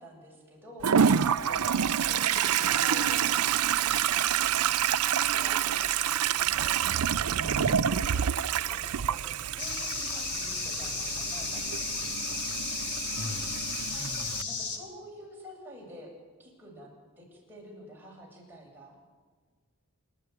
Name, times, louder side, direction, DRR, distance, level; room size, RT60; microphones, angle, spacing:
voice 1, 0.0-2.2 2.6-3.7 4.1-4.8 5.2-8.3 8.6-12.6 14.4-16.1 16.4-16.9 17.2-18.9, equal, 10° right, -3 dB, 7.9 m, -49 dB
Toilet flush, 0.8-14.4, right 8 dB, 80° right, 0.6 m, -28 dB
voice 2, 7.4-8.1 12.4-12.6 13.1-13.5 13.9-14.5, equal, 65° left, 4 dB, 5.5 m, -40 dB
sound 1, 9.6-14.8, left 5 dB, 90° left, 3.3 m, -34 dB
28.0 x 12.0 x 9.7 m, 1.5 s
head